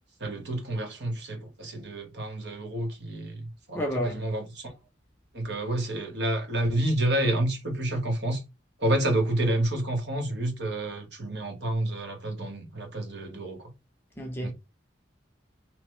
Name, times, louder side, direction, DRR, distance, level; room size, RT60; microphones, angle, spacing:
voice 1, 0.2-4.7 5.3-8.4 8.8-13.6 14.4-14.5, right 1 dB, 60° right, 0.9 m, -29 dB
voice 2, 3.7-4.2 14.2-14.5, equal, 10° left, 0.5 m, -30 dB
3.0 x 2.0 x 3.0 m
head